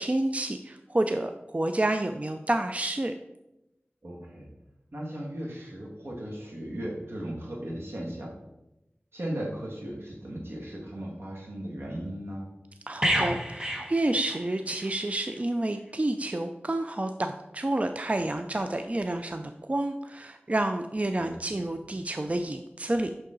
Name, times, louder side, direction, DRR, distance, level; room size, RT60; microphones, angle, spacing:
voice 1, 0.0-3.1 12.9-23.1, right 1 dB, 35° right, 7 dB, 0.4 m, -29 dB
voice 2, 4.0-4.5 4.9-8.3 9.1-12.5 21.2-21.3, right 1 dB, 75° right, -2 dB, 1.9 m, -36 dB
sound 1, 13.0-14.9 15.2-15.4, equal, 15° right, 1.0 m, -30 dB
6.6 x 5.7 x 3.8 m, 0.93 s
wide cardioid pair, 55°, 4 cm